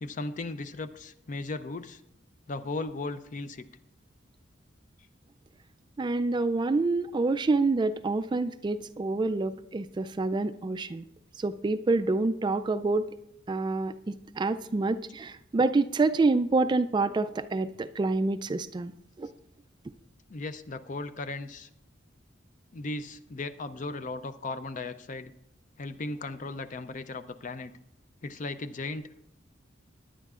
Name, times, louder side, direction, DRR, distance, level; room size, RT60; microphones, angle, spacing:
voice 1, 0.0-2.0 2.5-3.7 20.3-21.7 22.7-25.3 25.8-27.7 28.2-29.0, left 3 dB, 40° left, 11 dB, 0.5 m, -36 dB
voice 2, 6.0-11.0 11.4-13.0 13.5-18.9 19.2-19.3, right 3 dB, 25° right, 12 dB, 0.3 m, -27 dB
18.5 x 10.0 x 2.4 m, 0.80 s
head